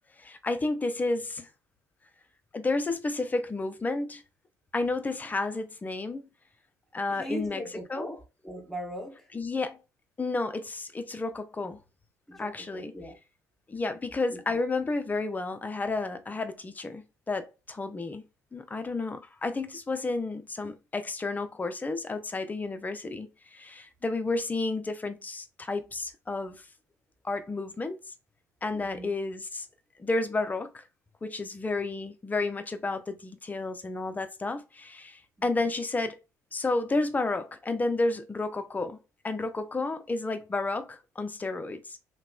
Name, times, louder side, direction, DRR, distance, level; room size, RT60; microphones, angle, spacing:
voice 1, 0.2-1.5 2.5-4.2 4.7-6.2 6.9-7.6 7.9-8.1 9.3-9.8 10.2-11.8 12.4-12.9 13.7-18.2 18.5-26.6 27.2-28.0 28.6-29.7 30.0-30.8 31.2-36.2 36.5-39.0 39.2-42.0, left 3 dB, 20° left, 0.5 m, -31 dB
voice 2, 7.1-9.3 12.3-13.2 14.3-14.6 28.7-29.1 35.4-35.7, equal, 5° left, 1.1 m, -40 dB
2.9 x 2.2 x 2.2 m
hypercardioid pair, 55°, 9 cm